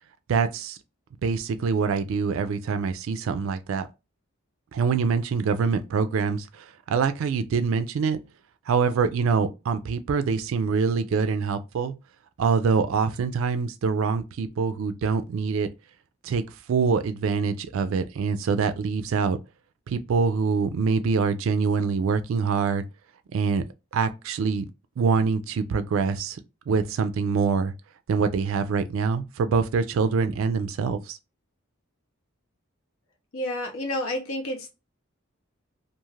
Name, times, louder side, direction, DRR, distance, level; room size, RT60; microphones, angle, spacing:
voice 1, 0.3-0.8 1.2-3.9 4.7-8.2 8.7-11.9 12.4-15.7 16.2-16.4 16.7-19.4 19.9-22.8 23.3-23.6 23.9-24.7 25.0-26.4 26.7-27.7 28.1-31.2, right 5 dB, 70° right, 0.3 m, -25 dB
voice 2, 33.3-34.7, left 1 dB, 75° left, 0.7 m, -30 dB
2.5 x 2.4 x 3.1 m
head